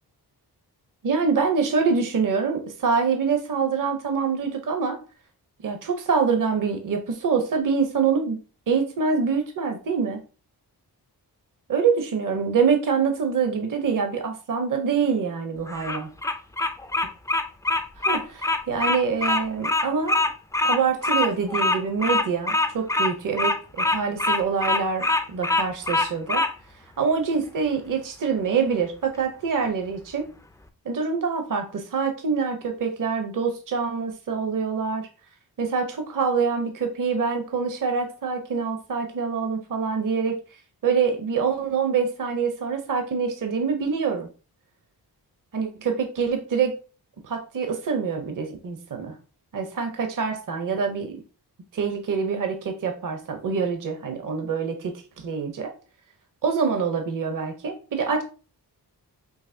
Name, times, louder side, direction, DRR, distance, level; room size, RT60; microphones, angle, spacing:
voice 1, 1.0-5.0 5.6-8.4 8.7-10.2 11.7-16.1 18.0-20.2 20.6-26.4 27.0-30.3 30.8-35.1 35.6-40.4 40.8-44.3 45.5-46.7 47.2-49.2 49.5-51.2 51.7-55.7 56.4-58.2, right 5 dB, 50° right, 5 dB, 0.7 m, -25 dB
Bird vocalization bird call bird song, 15.7-26.5, left 2 dB, 10° left, 0.3 m, -23 dB
6.4 x 3.0 x 2.6 m, 0.35 s
wide cardioid pair, 155°, 40 cm